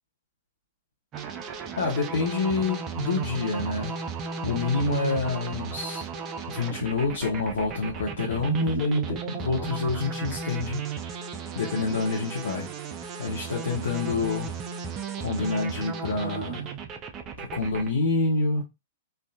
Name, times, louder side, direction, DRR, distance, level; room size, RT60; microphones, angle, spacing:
sound 1, 1.1-17.9, right 6 dB, 30° right, 0.5 m, -35 dB
voice 1, 1.8-4.0 4.4-6.1 6.5-10.8 11.5-12.7 13.2-14.5 15.2-16.7 17.4-18.6, left 3 dB, 70° left, 0.9 m, -27 dB
3.4 x 2.6 x 2.4 m
hypercardioid pair, 110°, 0 cm